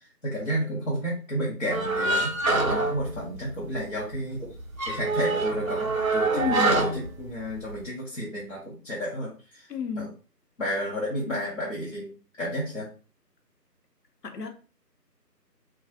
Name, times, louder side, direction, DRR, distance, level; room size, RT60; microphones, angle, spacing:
voice 1, 0.2-2.3 2.7-4.5 4.9-9.7 9.9-10.1 10.6-12.9, equal, 50° left, 0.9 m, -32 dB
sound 1, 1.7-3.8 4.1-4.2 4.6-7.8, right 2 dB, 55° right, 0.5 m, -26 dB
voice 2, 6.3-6.8 9.7-10.1 14.2-14.5, left 6 dB, 70° left, 0.7 m, -30 dB
2.7 x 2.2 x 2.6 m
figure-of-eight pair, 175°, 50 cm